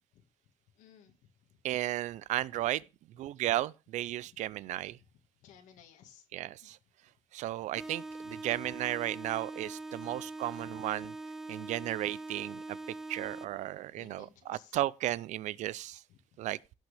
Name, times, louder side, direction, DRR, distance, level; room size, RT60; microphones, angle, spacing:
voice 1, 0.8-1.1 5.4-6.3 6.6-6.7 10.1-10.2 14.0-14.8 16.1-16.2, left 9 dB, 90° left, 1.7 m, -57 dB
voice 2, 1.6-2.8 3.2-5.0 6.3-6.8 7.3-11.1 11.5-12.8 13.1-16.0 16.4-16.6, right 15 dB, 70° right, 0.5 m, -34 dB
sound 1, 7.8-13.8, right 2 dB, 5° right, 0.8 m, -43 dB
16.5 x 6.2 x 3.4 m
cardioid pair, 140°, 13 cm